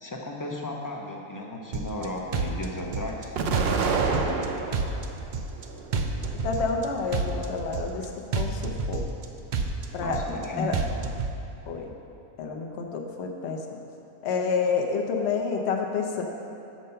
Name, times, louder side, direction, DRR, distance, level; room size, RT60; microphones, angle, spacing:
voice 1, 0.0-4.4 10.0-10.7, left 1 dB, 25° left, 0 dB, 0.4 m, -35 dB
sound 1, 1.7-2.0 2.3-3.2 3.5-4.4 4.7-5.6 5.9-6.8 7.1-8.0 8.3-9.2 9.5-10.4 10.7-11.3, right 4 dB, 90° right, 0.4 m, -29 dB
Explosion, 3.4-5.0 5.5-6.4, right 4 dB, 60° right, 0.7 m, -28 dB
voice 2, 6.4-8.1 8.4-9.0 9.9-10.8 11.7-11.9 12.4-13.8 14.2-16.2, left 5 dB, 55° left, 2 dB, 0.9 m, -29 dB
7.4 x 6.6 x 5.5 m, 2.9 s
omnidirectional pair, 1.5 m